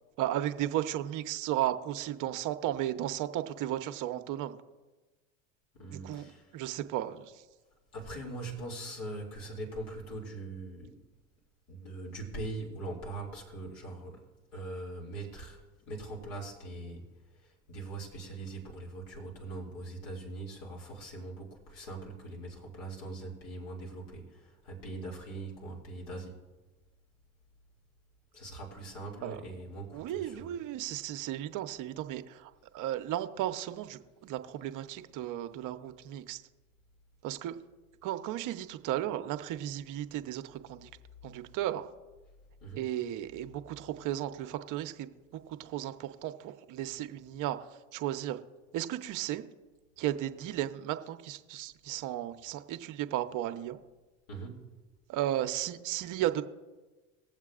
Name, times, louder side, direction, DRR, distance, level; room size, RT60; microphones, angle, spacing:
voice 1, 0.2-4.6 6.0-7.4 29.2-29.4 29.9-36.4 37.2-37.6 38.0-40.9 41.2-41.9 42.7-45.1 45.5-47.6 47.9-48.4 48.7-49.5 50.0-53.8 55.1-56.4, right 12 dB, 55° right, 8 dB, 0.9 m, -34 dB
voice 2, 5.7-6.6 7.9-10.9 11.7-14.2 14.5-15.6 15.9-26.4 28.3-30.5 42.6-42.9 54.3-54.7, right 2 dB, 65° left, -3 dB, 2.6 m, -42 dB
21.5 x 7.4 x 2.5 m, 1.2 s
hypercardioid pair, 75°, 37 cm